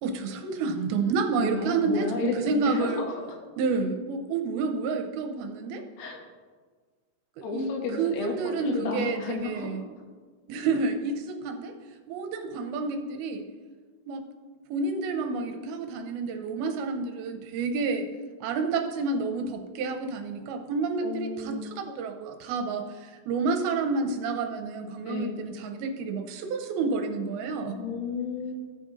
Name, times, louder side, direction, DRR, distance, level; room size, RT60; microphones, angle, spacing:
voice 1, 0.0-3.0 3.6-5.8 7.4-7.7 8.0-9.8 10.5-11.7 12.1-13.4 14.1-14.2 14.7-18.0 18.4-27.8, right 4 dB, 80° right, 5 dB, 2.5 m, -29 dB
voice 2, 1.4-3.4 6.0-6.2 7.4-9.7 21.0-21.7 25.1-25.3 27.7-28.5, left 4 dB, 85° left, 1 dB, 3.4 m, -33 dB
15.0 x 5.1 x 3.8 m, 1.5 s
omnidirectional pair, 4.6 m